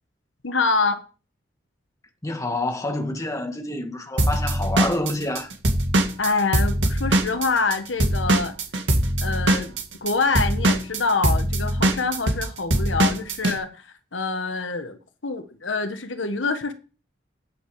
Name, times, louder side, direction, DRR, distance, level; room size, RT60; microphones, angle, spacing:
voice 1, 0.4-1.0 6.2-8.6 9.2-16.7, left 4 dB, 85° left, 1.3 m, -26 dB
voice 2, 2.2-5.5, left 2 dB, 15° left, 1.7 m, -27 dB
Drum kit / Drum, 4.2-7.7 8.0-13.5, right 1 dB, 70° right, 2.1 m, -21 dB
9.8 x 8.5 x 4.8 m
head